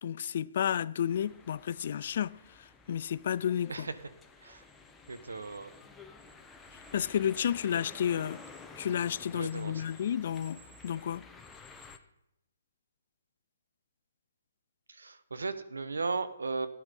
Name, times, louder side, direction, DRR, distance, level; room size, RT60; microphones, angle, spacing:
voice 1, 0.0-2.3 2.9-3.9 6.9-8.4 8.8-11.2, left 9 dB, 55° left, 0.4 m, -31 dB
sound 1, 1.1-12.0, left 3 dB, 5° left, 1.0 m, -52 dB
voice 2, 5.1-5.7 9.3-9.8 14.9-16.7, right 4 dB, 85° right, 1.1 m, -36 dB
14.0 x 9.8 x 5.5 m
hypercardioid pair, 145°, 0 cm